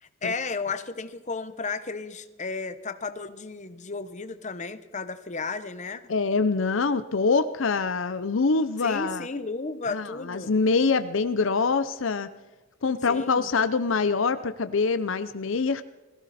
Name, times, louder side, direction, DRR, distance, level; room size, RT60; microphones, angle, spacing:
voice 1, 0.0-6.0 8.8-10.5 13.1-13.5, left 4 dB, 35° left, 10 dB, 1.0 m, -33 dB
voice 2, 6.1-9.3 9.9-12.3 12.8-15.8, left 4 dB, 70° left, 11 dB, 0.7 m, -25 dB
21.0 x 15.5 x 4.3 m, 1.1 s
head